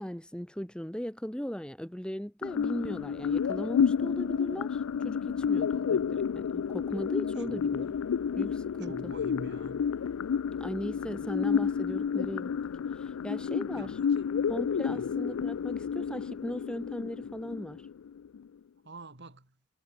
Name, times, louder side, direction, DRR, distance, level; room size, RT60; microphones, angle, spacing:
voice 1, 0.0-8.0 8.3-9.1 10.6-12.5 12.9-14.0 14.5-17.9, equal, 5° left, 1.2 m, -38 dB
sound 1, 2.4-18.4, left 7 dB, 75° left, 0.4 m, -30 dB
voice 2, 7.4-7.8 8.8-9.9 13.8-14.3 14.9-15.1 18.8-19.6, right 1 dB, 55° right, 4.1 m, -46 dB
head